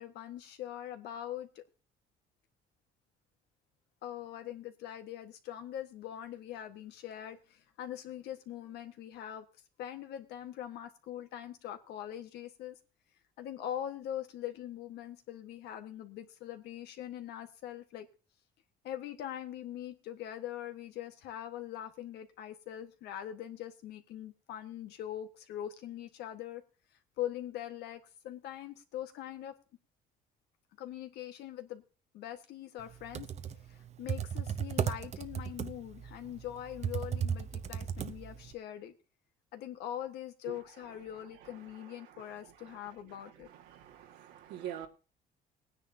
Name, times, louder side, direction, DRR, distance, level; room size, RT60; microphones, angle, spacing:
voice 1, 0.0-1.6 4.0-9.4 9.8-12.8 13.4-18.1 18.8-26.6 27.2-29.5 30.8-31.8 32.1-33.3 33.7-38.9 39.5-43.5, left 11 dB, 80° left, 1.5 m, -42 dB
Computer keyboard, 32.9-38.5, right 8 dB, 40° right, 0.8 m, -35 dB
voice 2, 43.7-44.9, right 10 dB, 90° right, 1.8 m, -43 dB
19.5 x 9.8 x 2.8 m
cardioid pair, 110°, 17 cm